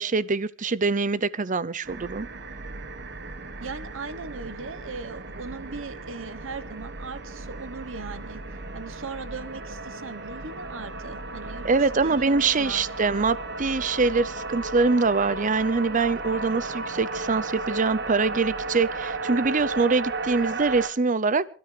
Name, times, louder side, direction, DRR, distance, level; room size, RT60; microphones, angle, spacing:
voice 1, 0.0-2.3 11.6-21.5, right 4 dB, 40° right, 0.7 m, -24 dB
sound 1, 1.8-20.9, right 3 dB, 60° right, 1.5 m, -35 dB
voice 2, 3.6-8.4 8.7-12.8, right 4 dB, 75° right, 1.3 m, -38 dB
27.0 x 13.0 x 3.4 m
head